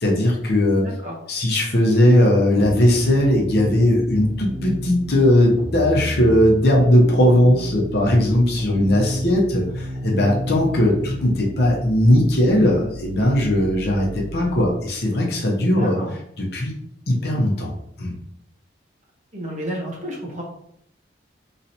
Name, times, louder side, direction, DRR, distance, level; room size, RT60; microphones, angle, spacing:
voice 1, 0.0-0.9 1.3-16.0 16.4-16.7 17.1-18.1, left 1 dB, 55° left, -2 dB, 0.8 m, -18 dB
voice 2, 0.8-1.2 15.8-16.2 19.3-20.4, right 1 dB, 40° right, -3 dB, 0.9 m, -31 dB
sound 1, 2.6-14.6, equal, 80° right, 1.0 m, -32 dB
3.1 x 2.8 x 2.7 m, 0.70 s
head